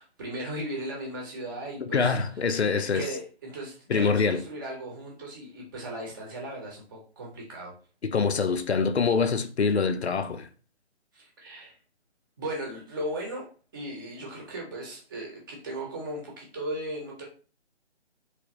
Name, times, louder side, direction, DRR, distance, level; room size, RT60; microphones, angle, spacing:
voice 1, 0.0-2.2 2.9-7.7 11.1-11.8 12.4-13.5 13.7-17.2, right 1 dB, 20° right, 0.9 m, -37 dB
voice 2, 1.8-3.1 3.9-4.4 8.0-10.5, left 5 dB, 70° left, 0.6 m, -25 dB
3.4 x 3.1 x 3.0 m
figure-of-eight pair, 145°, 34 cm